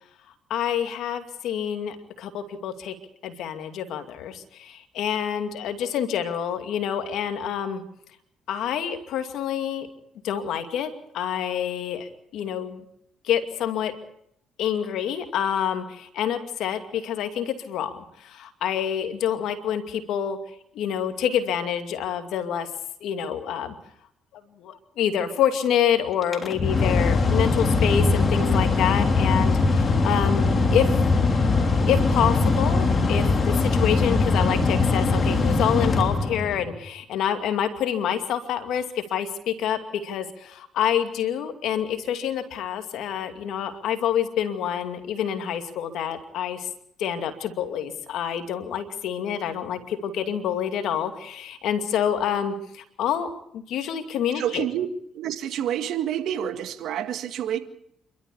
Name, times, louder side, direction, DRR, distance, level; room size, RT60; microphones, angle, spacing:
voice 1, 0.5-2.9 3.2-7.8 8.5-9.9 10.2-12.8 13.2-13.9 14.6-20.4 20.7-22.7 23.0-23.7 24.6-30.9 31.9-46.7 47.0-53.3 53.5-54.7, left 9 dB, 75° left, 8 dB, 2.4 m, -27 dB
Mechanical fan, 26.2-36.8, left 3 dB, 35° left, 3.5 m, -21 dB
voice 2, 54.4-54.9 55.2-57.6, right 10 dB, 70° right, 9 dB, 1.9 m, -28 dB
28.0 x 13.0 x 8.5 m, 0.72 s
supercardioid pair, 75°, 0 cm